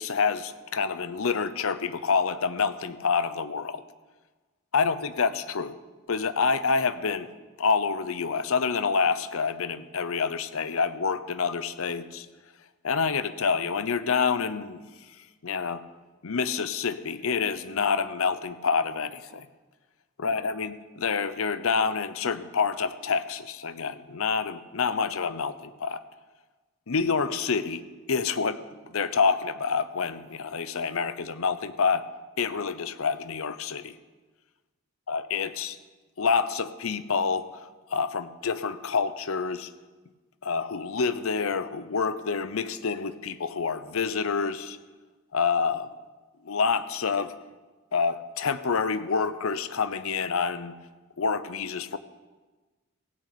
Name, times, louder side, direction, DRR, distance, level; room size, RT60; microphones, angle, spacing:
voice 1, 0.0-3.8 4.7-5.8 6.1-7.3 7.6-12.3 12.8-14.8 15.4-15.8 16.2-19.5 20.2-26.0 26.9-32.1 32.4-34.0 35.1-35.8 36.2-39.7 40.4-44.8 45.3-45.9 46.4-47.3 47.9-50.7 51.2-52.0, left 5 dB, 75° left, 13 dB, 0.7 m, -27 dB
16.0 x 6.5 x 8.5 m, 1.3 s
head